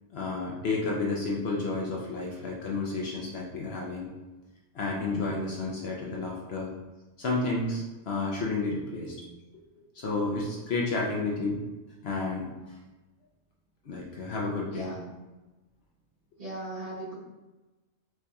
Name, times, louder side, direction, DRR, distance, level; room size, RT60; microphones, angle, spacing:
voice 1, 0.1-4.1 4.7-6.7 7.2-9.2 9.8-11.6 12.0-12.8 13.8-14.9, left 3 dB, 60° left, -3 dB, 0.8 m, -31 dB
voice 2, 14.7-15.1 16.4-17.2, right 1 dB, 50° right, -8 dB, 1.3 m, -38 dB
4.6 x 2.7 x 2.3 m, 1.1 s
omnidirectional pair, 1.3 m